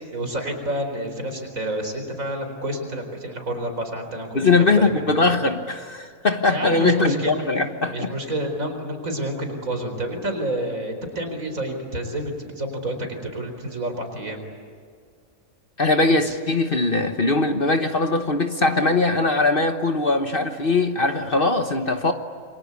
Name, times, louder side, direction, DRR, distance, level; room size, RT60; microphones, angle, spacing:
voice 1, 0.1-4.4 4.8-5.1 6.5-7.4 7.9-14.4, right 1 dB, 70° right, 6 dB, 4.7 m, -29 dB
voice 2, 4.3-8.1 15.8-22.1, left 3 dB, 40° left, 6 dB, 1.3 m, -21 dB
28.5 x 24.5 x 8.5 m, 2.1 s
omnidirectional pair, 1.5 m